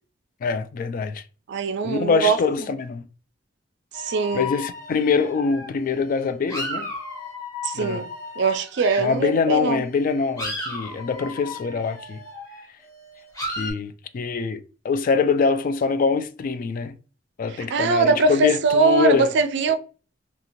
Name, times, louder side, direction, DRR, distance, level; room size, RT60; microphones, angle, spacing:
voice 1, 0.4-1.2 1.8-3.0 4.3-6.9 7.7-8.0 9.0-12.2 13.5-16.9 17.4-19.3, left 5 dB, 45° left, 0.3 m, -24 dB
voice 2, 1.5-2.4 3.9-4.5 7.6-8.1 8.4-9.8 17.5-19.8, right 4 dB, 65° right, 0.4 m, -21 dB
sound 1, 3.9-9.3 9.8-13.7, left 2 dB, 15° left, 1.2 m, -35 dB
2.8 x 2.5 x 2.9 m
head